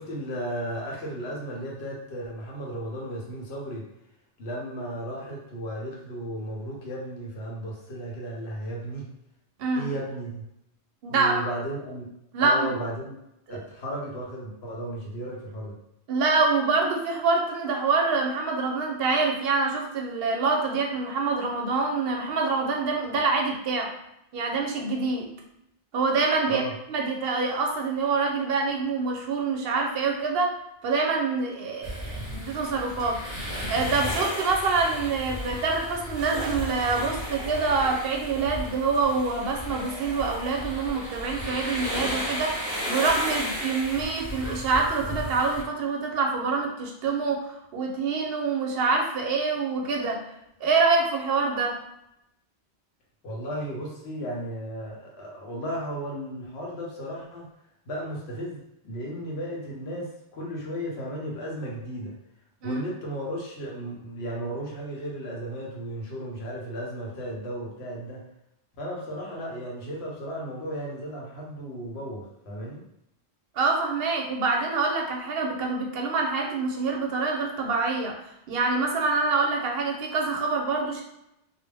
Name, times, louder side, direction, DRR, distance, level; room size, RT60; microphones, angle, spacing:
voice 1, 0.0-3.8 4.4-9.1 9.7-10.4 11.1-12.1 12.4-13.2 13.5-15.7 26.5-26.7 53.2-57.5 57.9-62.1 62.6-68.2 68.8-72.8, right 1 dB, 75° left, -2 dB, 1.0 m, -34 dB
voice 2, 9.6-9.9 11.0-11.5 12.3-12.7 13.5-13.6 16.1-23.9 24.3-25.2 25.9-26.6 26.9-30.5 30.8-42.6 42.9-50.2 50.6-51.7 62.6-62.8 73.5-78.1 78.5-81.0, right 4 dB, 65° right, 1 dB, 0.7 m, -26 dB
sound 1, 31.8-45.6, equal, 15° left, 0.9 m, -34 dB
2.4 x 2.0 x 3.3 m, 0.81 s
omnidirectional pair, 1.1 m